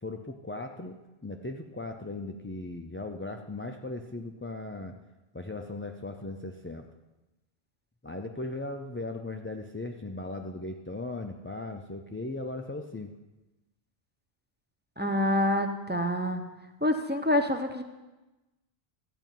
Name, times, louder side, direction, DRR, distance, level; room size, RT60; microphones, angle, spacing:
voice 1, 0.0-5.0 5.3-6.9 8.0-13.1, left 2 dB, 20° left, 3 dB, 0.4 m, -38 dB
voice 2, 15.0-16.4 16.8-17.8, left 1 dB, 10° right, 5 dB, 0.7 m, -26 dB
13.0 x 5.5 x 9.1 m, 1.1 s
omnidirectional pair, 1.1 m